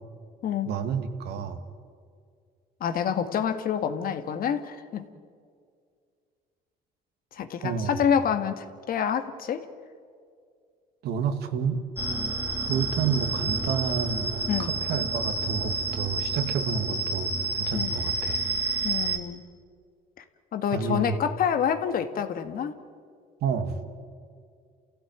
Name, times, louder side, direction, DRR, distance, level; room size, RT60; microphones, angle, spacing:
voice 1, 0.7-1.6 7.6-8.0 11.0-11.8 12.7-18.4 20.7-21.2 23.4-23.8, right 6 dB, 75° right, 8 dB, 2.1 m, -29 dB
voice 2, 2.8-5.1 7.3-9.7 14.5-14.7 17.7-17.9 18.8-19.4 20.2-20.3 20.5-22.7, left 8 dB, 60° left, 9 dB, 1.8 m, -27 dB
sound 1, 12.0-19.2, right 3 dB, 15° right, 2.4 m, -29 dB
29.0 x 16.0 x 9.4 m, 2.2 s
cardioid pair, 110°, 17 cm